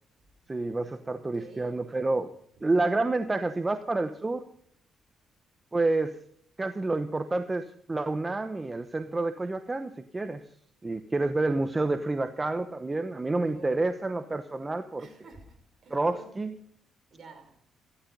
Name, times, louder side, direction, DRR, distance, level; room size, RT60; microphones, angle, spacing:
voice 1, 0.5-2.3 2.6-4.4 5.7-6.2 6.6-10.4 10.8-15.1 15.9-16.5, right 2 dB, 20° right, 0.9 m, -29 dB
voice 2, 1.1-1.9 13.4-13.9 15.0-16.3 17.1-17.6, right 3 dB, 50° right, 4.6 m, -50 dB
15.0 x 13.0 x 5.3 m
cardioid pair, 90°, 0 cm